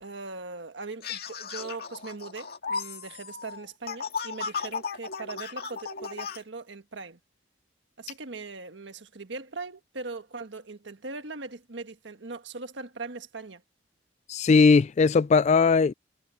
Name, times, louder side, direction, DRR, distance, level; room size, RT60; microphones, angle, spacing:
voice 1, 0.0-7.2 8.0-13.6, right 3 dB, 70° right, 1.5 m, -40 dB
sound 1, 1.0-6.4, left 5 dB, 55° left, 2.3 m, -35 dB
voice 2, 14.3-15.9, left 4 dB, 40° left, 0.3 m, -19 dB
head